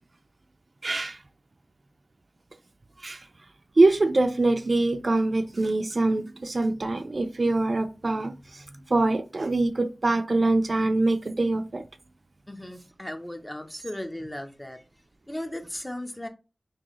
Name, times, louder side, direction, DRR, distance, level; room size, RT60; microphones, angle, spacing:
voice 1, 0.8-1.2 3.0-3.2 3.8-8.6 8.9-11.8, right 2 dB, 45° right, 0.4 m, -24 dB
voice 2, 12.5-14.8 15.3-16.3, left 1 dB, 15° left, 0.6 m, -36 dB
4.5 x 3.2 x 3.0 m
wide cardioid pair, 90°, 0 cm